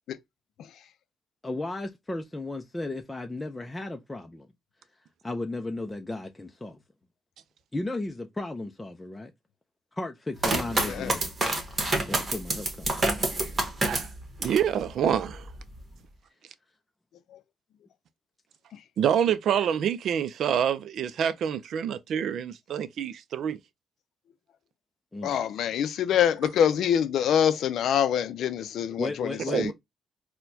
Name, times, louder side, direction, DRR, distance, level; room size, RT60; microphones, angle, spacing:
voice 1, 1.4-4.5 5.2-6.8 7.7-9.3 9.9-11.3 12.0-13.0 19.3-19.4 25.1-25.4 29.0-29.7, left 2 dB, 15° left, 0.5 m, -34 dB
sound 1, 10.4-14.7 15.1-15.8, right 2 dB, 35° right, 1.2 m, -28 dB
voice 2, 10.8-11.1 25.2-29.7, left 9 dB, 75° left, 0.4 m, -25 dB
voice 3, 14.4-15.4 19.0-23.6 29.5-29.7, right 8 dB, 70° right, 0.4 m, -27 dB
4.2 x 2.2 x 2.7 m
cardioid pair, 90°, 0 cm